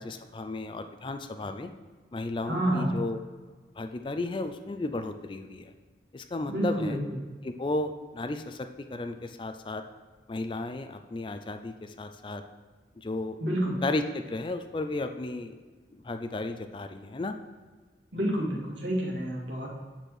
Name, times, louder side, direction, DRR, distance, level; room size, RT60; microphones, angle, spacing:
voice 1, 0.0-1.7 2.1-3.2 3.8-5.7 6.1-7.0 7.4-9.8 10.3-12.4 13.0-13.4 13.8-15.6 15.9-17.4, left 2 dB, 25° left, 7 dB, 0.4 m, -34 dB
voice 2, 2.5-3.0 6.5-7.0 13.4-13.8 18.1-19.7, right 1 dB, 85° right, -3 dB, 2.0 m, -29 dB
9.0 x 4.4 x 4.8 m, 1.4 s
head